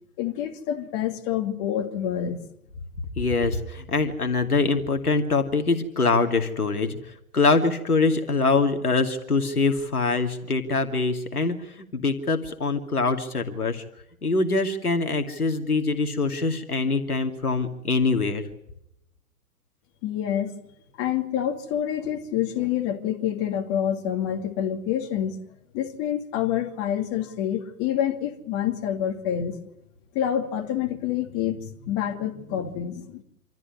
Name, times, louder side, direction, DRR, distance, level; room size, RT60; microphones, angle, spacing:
voice 1, 0.2-2.4 20.0-20.5 21.0-25.4 25.7-29.6 30.1-33.2, left 10 dB, 30° left, 2.8 m, -27 dB
voice 2, 3.2-7.0 7.3-13.8 14.2-18.4, left 3 dB, 75° left, 2.6 m, -24 dB
27.5 x 13.5 x 9.7 m
figure-of-eight pair, 115°, 45 cm